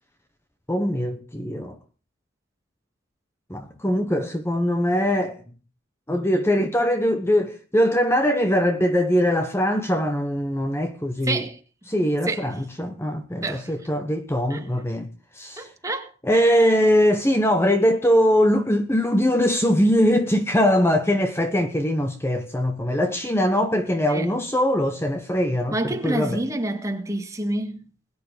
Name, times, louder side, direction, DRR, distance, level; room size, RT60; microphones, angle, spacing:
voice 1, 0.7-1.8 3.5-5.4 6.1-11.4 11.9-15.1 15.3-15.7 16.2-26.4, equal, 15° left, 1.1 m, -22 dB
voice 2, 11.3-11.6 12.3-12.4 13.4-13.7 14.5-14.7 15.6-16.5 24.1-24.3 25.7-27.8, right 2 dB, 15° right, 2.0 m, -28 dB
21.0 x 9.8 x 5.0 m
head